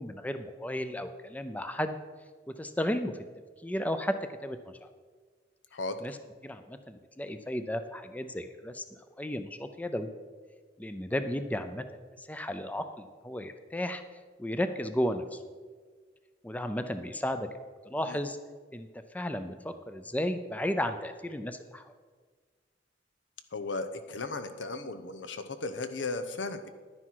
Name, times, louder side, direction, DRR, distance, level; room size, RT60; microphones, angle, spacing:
voice 1, 0.0-2.0 2.5-3.1 3.6-4.2 4.4-4.9 6.0-6.2 6.4-8.8 9.2-10.1 10.8-11.8 12.2-14.0 14.4-15.4 16.4-17.5 17.8-18.4 18.7-18.9 19.1-21.9, left 1 dB, 10° left, 9 dB, 0.5 m, -34 dB
voice 2, 23.5-26.7, left 3 dB, 90° left, 9 dB, 0.9 m, -36 dB
11.0 x 9.8 x 4.7 m, 1.5 s
head